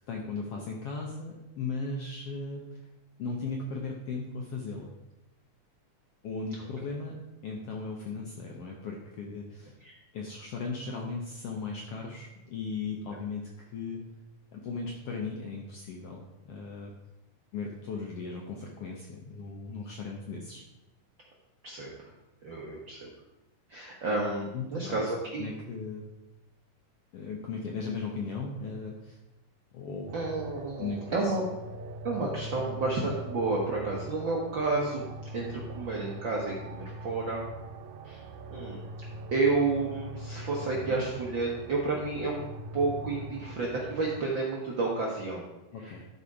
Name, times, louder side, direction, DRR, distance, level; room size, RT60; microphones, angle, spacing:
voice 1, 0.1-2.6 3.2-4.9 6.2-7.2 7.4-9.7 10.1-14.0 14.5-16.9 17.5-20.6 24.5-25.1 25.4-26.0 27.1-29.2 29.7-30.1 30.8-31.3 40.7-41.0 45.7-46.1, left 4 dB, 70° left, 0 dB, 1.4 m, -37 dB
voice 2, 21.6-22.1 22.4-23.1 23.7-25.5 30.1-31.4 32.0-35.1 35.3-37.4 38.0-38.2 38.5-38.9 39.3-42.4 42.7-45.5 45.8-45.9, right 3 dB, 65° right, -3 dB, 1.2 m, -31 dB
sound 1, 30.1-44.2, right 1 dB, 85° right, 2.4 m, -42 dB
12.0 x 4.4 x 4.8 m, 0.98 s
omnidirectional pair, 3.8 m